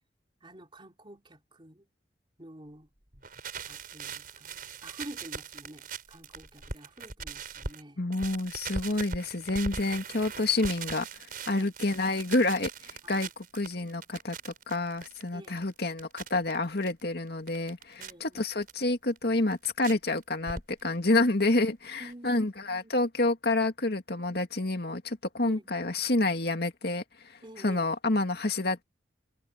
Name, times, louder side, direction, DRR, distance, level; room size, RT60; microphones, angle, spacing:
voice 1, 0.4-1.9 2.4-2.9 3.6-4.5 4.8-8.0 11.5-11.7 13.0-13.3 15.3-15.6 18.0-18.4 22.0-22.8 25.4-25.7 27.4-27.9, right 1 dB, 30° right, 3.5 m, -48 dB
sound 1, 3.1-7.8 8.1-16.9 17.3-18.1 18.7-18.8 19.2-19.9 20.2-21.0 21.2-21.3 21.5-21.6 21.8-21.9, right 5 dB, 50° right, 5.9 m, -40 dB
voice 2, 8.0-28.8, left 2 dB, 60° left, 2.3 m, -29 dB
head